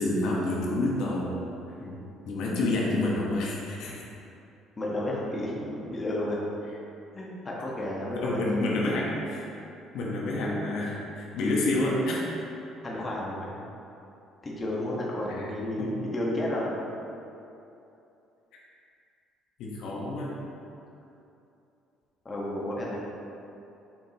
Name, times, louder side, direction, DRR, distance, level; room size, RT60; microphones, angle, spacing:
voice 1, 0.0-1.3 2.2-4.0 8.2-9.4 9.9-12.3 15.4-15.5 15.8-15.9 19.6-20.4, left 2 dB, 75° left, -3 dB, 1.0 m, -28 dB
voice 2, 4.8-6.4 7.1-8.6 12.8-13.6 14.4-16.7 22.2-23.0, left 1 dB, 25° left, -4 dB, 1.2 m, -32 dB
7.3 x 5.4 x 2.9 m, 2.8 s
cardioid pair, 110°, 0 cm